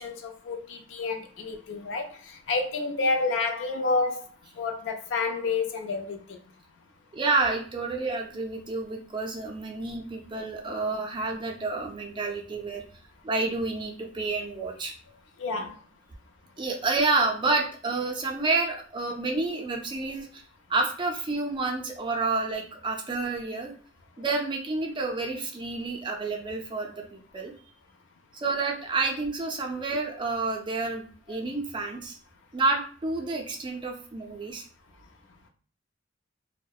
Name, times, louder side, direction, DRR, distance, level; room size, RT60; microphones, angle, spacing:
voice 1, 0.0-4.2 4.6-6.4 15.4-15.8 31.3-31.4, left 3 dB, 70° left, 0.4 m, -29 dB
voice 2, 7.1-12.8 13.2-14.9 16.6-20.4 20.7-23.7 24.2-27.5 28.3-32.2 32.5-34.6, right 3 dB, 25° right, 0.4 m, -29 dB
2.6 x 2.0 x 2.3 m
head